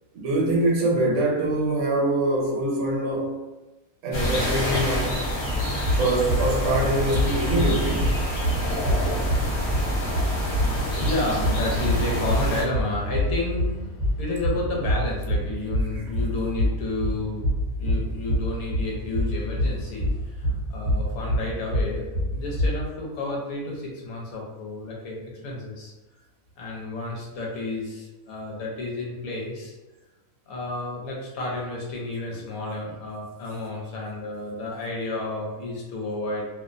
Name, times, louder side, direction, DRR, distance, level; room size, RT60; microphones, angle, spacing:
voice 1, 0.1-3.4 4.0-5.2 6.0-8.6, right 1 dB, 75° right, 1.0 m, -24 dB
sound 1, 4.1-12.6, equal, 55° left, 1.0 m, -27 dB
sound 2, 5.5-22.9, equal, 40° right, 0.8 m, -27 dB
voice 2, 8.8-25.9 26.6-29.7 30.5-36.5, left 2 dB, 80° left, 1.1 m, -31 dB
2.7 x 2.0 x 2.4 m
omnidirectional pair, 1.5 m